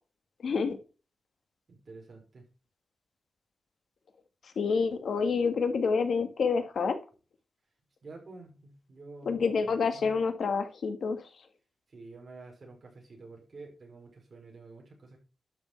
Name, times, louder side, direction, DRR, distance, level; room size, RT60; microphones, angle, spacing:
voice 1, 0.4-0.8 4.6-7.0 9.3-11.2, left 5 dB, 75° left, 8 dB, 1.7 m, -28 dB
voice 2, 1.7-2.4 8.0-10.1 11.9-15.2, right 3 dB, 45° right, 0 dB, 5.3 m, -49 dB
12.0 x 6.3 x 4.6 m, 0.33 s
wide cardioid pair, 150°, 0 cm